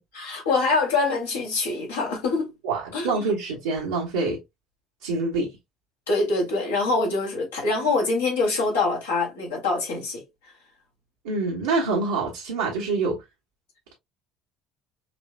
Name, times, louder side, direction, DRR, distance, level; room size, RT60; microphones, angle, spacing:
voice 1, 0.2-2.5 2.9-3.2 6.1-10.2 12.8-12.9, left 3 dB, 85° left, 2.4 m, -24 dB
voice 2, 2.6-4.4 5.0-5.5 11.2-13.2, right 3 dB, 80° right, 1.4 m, -26 dB
5.8 x 3.1 x 2.2 m
hypercardioid pair, 60°, 0 cm